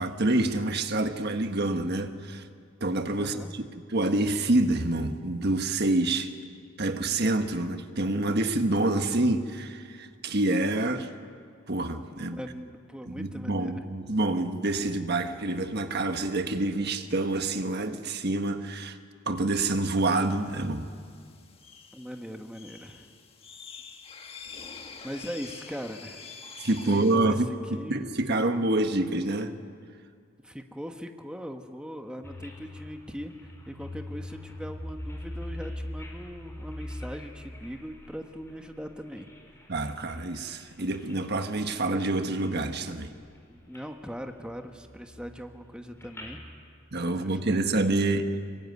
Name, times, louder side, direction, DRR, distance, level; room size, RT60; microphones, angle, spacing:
voice 1, 0.0-2.4 2.8-3.6 3.9-6.3 6.8-11.1 11.7-12.4 13.1-19.0 19.3-20.9 26.6-27.5 27.9-29.6 39.7-43.1 46.9-48.4, right 2 dB, 50° right, 1.4 m, -27 dB
voice 2, 3.2-3.5 12.1-13.9 21.9-23.1 25.0-26.3 26.7-28.0 30.4-39.3 43.5-46.4 47.1-47.4, equal, 5° right, 1.2 m, -40 dB
sound 1, 20.0-27.2, left 5 dB, 30° left, 1.6 m, -46 dB
sound 2, 32.2-39.7 40.1-41.1 41.5-41.8 42.0-42.9 43.2-43.8 44.1-46.5, left 1 dB, 10° left, 5.0 m, -42 dB
26.0 x 23.5 x 9.6 m
head